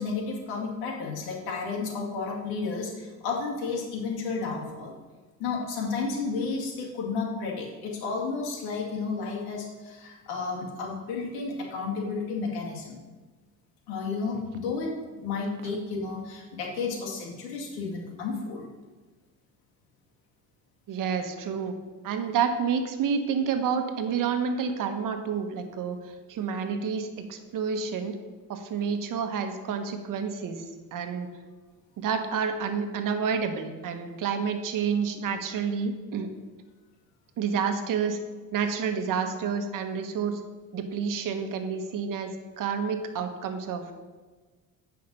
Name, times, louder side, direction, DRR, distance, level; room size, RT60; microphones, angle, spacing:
voice 1, 0.0-4.9 5.4-13.0 13.9-18.6, left 4 dB, 85° left, -1 dB, 2.1 m, -32 dB
voice 2, 20.9-21.8 22.0-28.2 28.5-31.3 32.0-36.3 37.4-38.2 38.5-40.4 40.7-43.9, right 6 dB, 60° right, 7 dB, 1.1 m, -29 dB
8.6 x 5.7 x 5.4 m, 1.3 s
cardioid pair, 85°, 36 cm